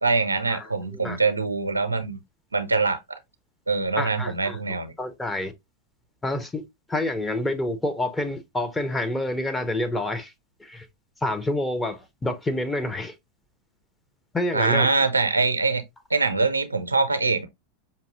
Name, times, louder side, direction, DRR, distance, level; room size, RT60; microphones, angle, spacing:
voice 1, 0.0-2.2 2.5-3.0 3.7-4.9 14.5-15.8 16.1-17.5, right 3 dB, 80° right, 0.5 m, -23 dB
voice 2, 4.0-4.6 5.0-5.5 6.2-10.3 10.6-10.9 11.2-13.1 14.3-14.9, left 1 dB, 10° left, 0.6 m, -28 dB
5.3 x 2.6 x 2.4 m
figure-of-eight pair, 90°, 0 cm